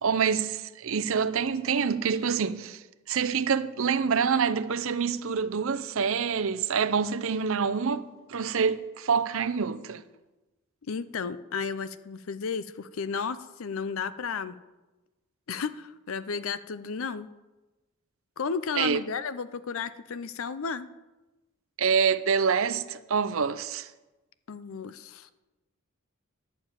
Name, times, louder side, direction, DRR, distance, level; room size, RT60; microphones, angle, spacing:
voice 1, 0.0-10.0 18.8-19.0 21.8-23.9, right 6 dB, 65° right, 0.6 m, -26 dB
voice 2, 10.9-14.6 15.5-17.3 18.4-20.9 24.5-25.3, left 5 dB, 70° left, 0.6 m, -33 dB
11.5 x 6.9 x 8.9 m
head